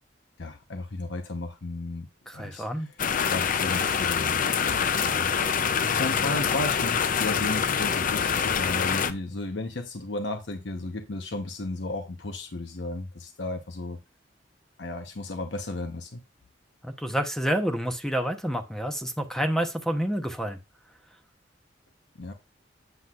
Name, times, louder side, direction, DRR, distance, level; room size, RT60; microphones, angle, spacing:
voice 1, 0.4-2.1 2.3-2.9 3.2-4.4 5.0-5.3 5.7-14.0 14.8-16.2 22.2-22.3, left 2 dB, 70° left, 1.0 m, -34 dB
voice 2, 2.3-2.9 16.8-20.6, equal, 5° left, 0.9 m, -28 dB
sound 1, 3.0-9.1, left 7 dB, 50° left, 0.5 m, -25 dB
8.0 x 7.5 x 2.4 m
head